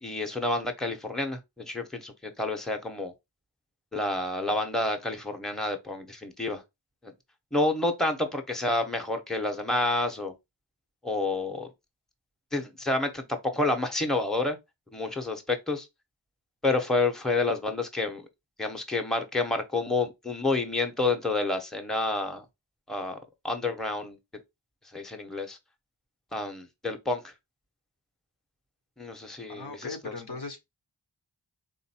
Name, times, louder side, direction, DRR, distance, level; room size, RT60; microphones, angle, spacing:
voice 1, 0.0-3.1 3.9-6.6 7.0-7.1 7.5-10.3 11.0-11.7 12.5-14.6 14.9-15.9 16.6-18.2 18.6-22.4 22.9-23.2 23.4-24.2 24.9-25.6 26.3-27.3 29.0-30.1, left 2 dB, ahead, 0.9 m, -29 dB
voice 2, 29.5-30.6, left 3 dB, 55° left, 1.0 m, -38 dB
4.0 x 2.6 x 4.2 m
wide cardioid pair, 45°, 47 cm